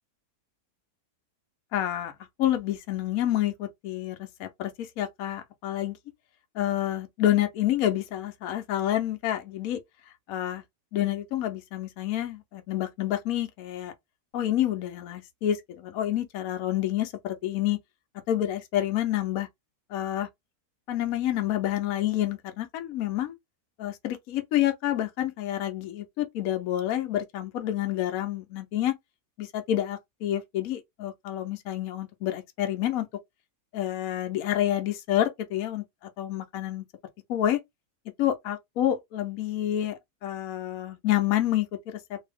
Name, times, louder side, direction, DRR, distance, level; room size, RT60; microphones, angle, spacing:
voice 1, 1.7-2.1 2.4-6.0 6.5-9.8 10.3-10.6 10.9-13.9 14.3-17.8 18.3-19.5 19.9-20.3 20.9-23.3 23.8-28.9 29.4-33.1 33.7-35.8 36.2-36.8 37.3-37.6 38.2-42.2, left 12 dB, 70° left, 1.1 m, -28 dB
2.8 x 2.7 x 3.4 m
omnidirectional pair, 1.7 m